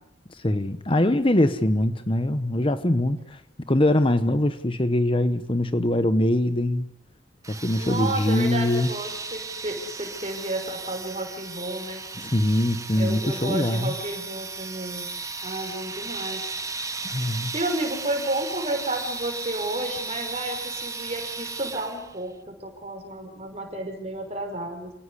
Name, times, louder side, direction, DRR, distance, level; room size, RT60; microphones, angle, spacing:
voice 1, 0.3-3.4 3.7-6.8 7.5-8.9 12.2-13.9 17.0-17.5, left 1 dB, 30° left, 11 dB, 1.0 m, -23 dB
sound 1, 7.4-22.2, right 4 dB, 15° right, 1.3 m, -35 dB
voice 2, 7.8-12.0 13.0-15.1 15.4-16.5 17.5-24.9, right 1 dB, 35° right, 4 dB, 6.1 m, -31 dB
29.0 x 18.0 x 9.9 m, 0.81 s
head